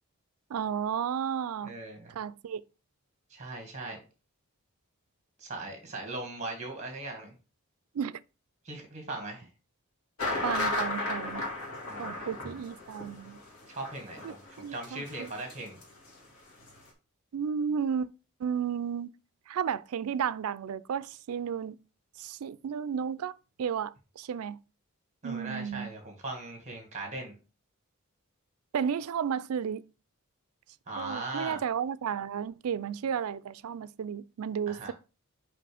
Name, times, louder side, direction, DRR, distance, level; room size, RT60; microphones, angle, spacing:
voice 1, 0.5-1.7 2.1-2.6 7.9-8.2 10.4-11.4 12.0-13.4 14.2-15.3 17.3-18.1 18.4-19.1 19.5-21.8 22.2-24.6 25.2-25.9 28.7-29.8 31.0-34.9, right 7 dB, 80° right, 0.4 m, -33 dB
voice 2, 1.6-2.1 3.3-4.0 5.4-7.3 8.6-9.5 11.9-12.3 13.7-15.8 25.2-27.4 30.9-31.6 34.7-34.9, right 2 dB, 30° right, 1.9 m, -39 dB
sound 1, 10.2-15.8 16.1-16.2 16.6-16.7, left 2 dB, 80° left, 2.0 m, -34 dB
5.9 x 5.3 x 3.4 m
head